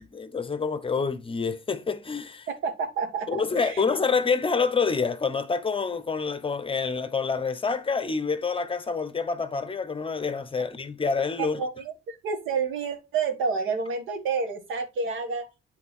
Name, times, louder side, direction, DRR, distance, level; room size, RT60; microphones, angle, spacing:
voice 1, 0.1-2.5 3.3-11.6, left 5 dB, 25° left, 0.9 m, -27 dB
voice 2, 2.6-3.8 11.6-15.5, right 5 dB, 85° right, 1.7 m, -29 dB
8.3 x 3.9 x 4.5 m
cardioid pair, 90°, 20 cm